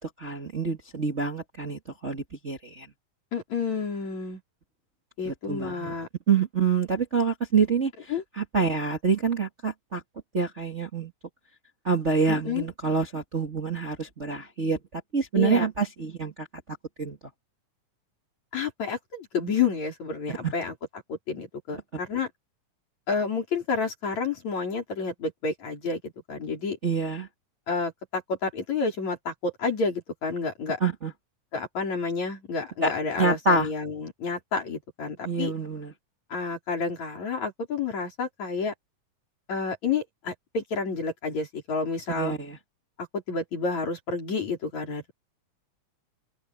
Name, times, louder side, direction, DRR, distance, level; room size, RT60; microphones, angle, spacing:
voice 1, 0.0-2.9 5.3-5.9 6.3-7.9 8.4-10.0 10.3-11.1 11.8-16.5 17.0-17.2 20.3-20.5 26.8-27.3 30.8-31.1 32.8-32.9 33.2-33.7 35.2-35.9 42.2-42.6, right 4 dB, 25° right, 2.0 m, -26 dB
voice 2, 3.3-4.4 5.2-6.1 8.1-8.2 12.3-12.7 15.4-15.7 18.5-20.7 21.1-22.3 23.1-26.8 27.7-30.8 31.5-35.5 36.3-38.7 39.5-42.4 43.1-45.1, left 4 dB, 55° left, 6.2 m, -30 dB
open air
omnidirectional pair, 3.7 m